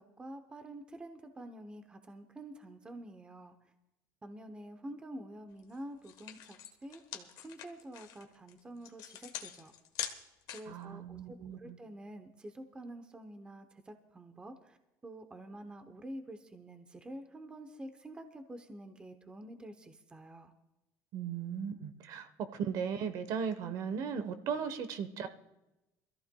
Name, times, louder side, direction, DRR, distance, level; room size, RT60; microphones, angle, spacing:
voice 1, 0.0-3.5 4.2-9.7 10.5-14.8 15.0-20.5, right 1 dB, 15° right, 7 dB, 0.8 m, -48 dB
sound 1, 5.6-5.8 6.0-10.8, left 10 dB, 60° left, 1.2 m, -43 dB
voice 2, 10.7-11.8 21.1-25.3, right 7 dB, 55° right, 10 dB, 1.0 m, -37 dB
24.5 x 14.5 x 2.3 m, 0.94 s
cardioid pair, 165°, 7 cm